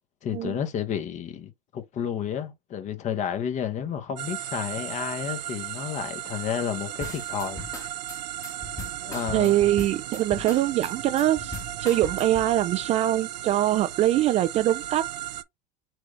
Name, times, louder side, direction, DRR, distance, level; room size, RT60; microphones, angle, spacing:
voice 1, 0.2-7.6 9.0-9.6, left 8 dB, 35° left, 1.0 m, -31 dB
sound 1, 4.2-15.4, right 12 dB, 85° right, 0.5 m, -35 dB
sound 2, 7.0-12.5, left 2 dB, 15° left, 1.2 m, -39 dB
voice 2, 9.3-15.0, right 13 dB, 30° right, 0.3 m, -23 dB
6.1 x 2.4 x 3.1 m
hypercardioid pair, 95°, 21 cm